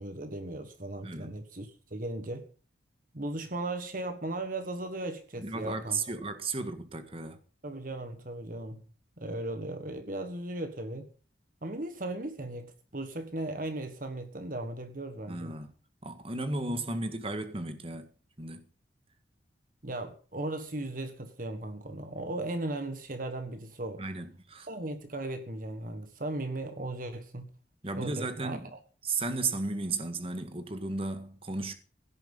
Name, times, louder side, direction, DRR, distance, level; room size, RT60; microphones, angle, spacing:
voice 1, 0.0-2.5 3.1-6.0 7.6-8.8 9.2-11.1 11.6-15.5 19.8-24.0 24.7-27.5 28.0-28.8, right 2 dB, 45° right, 1.5 m, -37 dB
voice 2, 1.0-1.3 5.4-7.4 15.3-15.7 16.0-18.1 18.4-18.7 24.0-24.7 27.8-28.7 29.0-31.7, right 3 dB, 30° right, 1.8 m, -34 dB
17.0 x 10.5 x 5.6 m
head